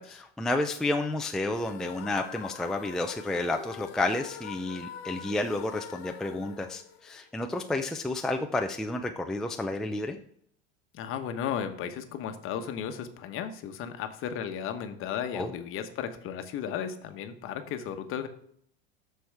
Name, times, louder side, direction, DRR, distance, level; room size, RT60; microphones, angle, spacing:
voice 1, 0.4-10.2 15.3-15.5, left 2 dB, ahead, 4 dB, 0.5 m, -31 dB
sound 1, 1.5-7.6, left 9 dB, 75° left, 1.2 m, -44 dB
voice 2, 10.9-18.3, left 8 dB, 45° left, 7 dB, 1.1 m, -35 dB
13.0 x 4.7 x 3.5 m, 0.67 s
hypercardioid pair, 105°, 31 cm